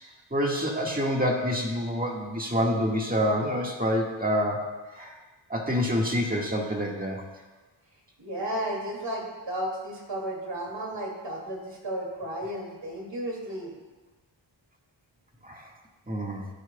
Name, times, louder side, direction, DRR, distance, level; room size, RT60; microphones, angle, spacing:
voice 1, 0.3-4.7 4.9-5.2 5.5-7.2 15.4-15.7 16.1-16.5, equal, 20° right, -1 dB, 1.7 m, -27 dB
voice 2, 8.2-13.7, right 1 dB, 60° right, -1 dB, 2.7 m, -33 dB
13.5 x 9.2 x 2.3 m, 1.2 s
wide cardioid pair, 70°, 48 cm